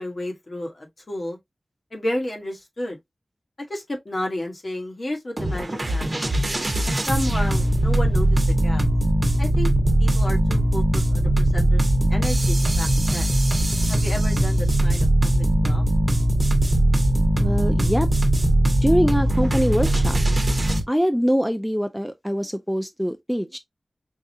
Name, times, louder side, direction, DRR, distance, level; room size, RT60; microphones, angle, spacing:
voice 1, 0.0-1.4 1.9-3.0 3.7-6.3 6.9-8.8 9.4-9.7 10.0-11.8 12.1-13.3 13.9-15.8, left 1 dB, 55° left, 1.3 m, -32 dB
sound 1, 5.4-20.8, right 1 dB, 40° right, 1.0 m, -20 dB
voice 2, 17.4-18.1 18.8-20.2 20.9-23.6, equal, ahead, 0.4 m, -23 dB
4.7 x 2.4 x 2.7 m
wide cardioid pair, 70°, 0 cm